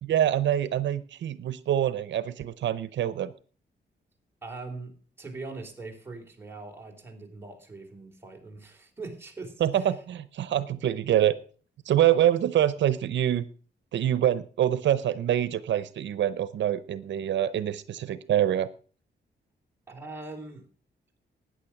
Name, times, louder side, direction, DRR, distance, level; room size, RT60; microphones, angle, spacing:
voice 1, 0.0-3.3 9.6-11.3 11.9-13.4 13.9-18.7, right 11 dB, 85° right, 15 dB, 0.7 m, -25 dB
voice 2, 4.4-10.0 19.9-20.7, right 3 dB, 10° right, 0 dB, 3.7 m, -41 dB
13.5 x 9.5 x 5.8 m, 0.42 s
cardioid pair, 110°, 18 cm